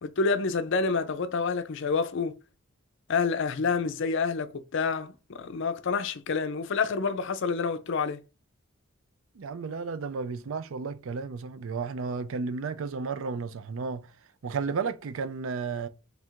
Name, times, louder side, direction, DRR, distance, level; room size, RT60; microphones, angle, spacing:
voice 1, 0.0-2.4 3.1-8.2, left 4 dB, 60° left, 0.5 m, -28 dB
voice 2, 9.4-14.1 14.4-15.9, right 5 dB, 70° right, 0.4 m, -33 dB
3.4 x 2.5 x 4.4 m
head